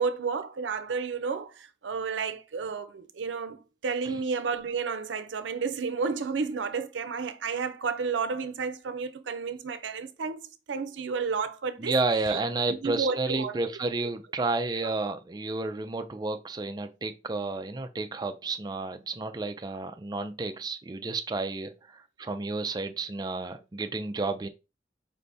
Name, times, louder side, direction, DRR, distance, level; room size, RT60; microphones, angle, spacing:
voice 1, 0.0-10.4 10.7-11.9 12.3-12.4 12.7-13.7 14.0-14.1 14.8-14.9, right 5 dB, 90° right, 0.5 m, -31 dB
voice 2, 11.8-24.5, right 3 dB, 20° right, 0.4 m, -31 dB
5.1 x 3.4 x 2.6 m
head